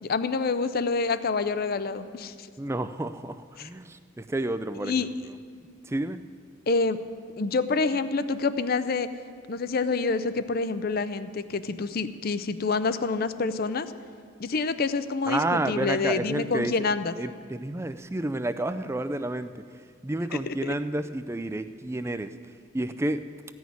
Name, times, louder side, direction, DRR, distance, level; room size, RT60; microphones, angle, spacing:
voice 1, 0.0-2.5 3.6-3.7 4.8-5.1 6.7-7.0 7.4-9.1 9.5-13.9 14.4-17.1 20.5-20.7, left 4 dB, 45° left, 12 dB, 0.5 m, -27 dB
voice 2, 2.6-5.1 5.8-6.2 15.3-16.8 17.2-19.6 20.0-22.3 22.7-23.2, right 2 dB, 15° right, 11 dB, 0.4 m, -30 dB
15.5 x 6.3 x 9.4 m, 2.1 s
head